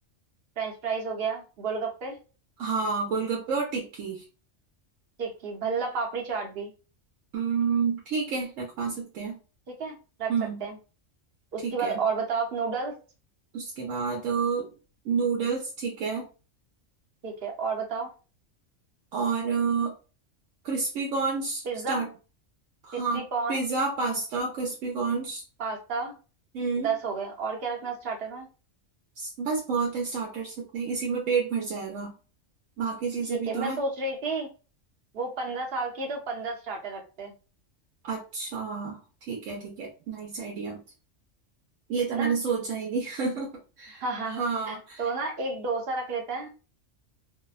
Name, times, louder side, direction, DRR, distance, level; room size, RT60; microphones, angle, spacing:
voice 1, 0.6-2.2 5.2-6.7 9.7-10.3 10.6-10.8 11.5-12.9 17.2-18.1 21.7-22.0 22.9-23.6 25.6-26.1 26.8-28.5 33.3-34.5 35.1-37.3 42.1-42.3 44.0-46.5, right 4 dB, 55° right, 1 dB, 0.9 m, -31 dB
voice 2, 2.6-4.2 7.3-9.4 10.3-10.6 11.6-12.0 13.5-14.7 15.0-16.3 19.1-19.9 20.6-22.1 22.8-25.4 26.5-26.9 29.2-32.1 32.8-33.8 38.0-39.0 39.3-40.8 41.9-44.0 44.4-45.1, right 5 dB, 80° right, -1 dB, 1.0 m, -29 dB
2.7 x 2.1 x 2.3 m, 0.34 s
omnidirectional pair, 1.3 m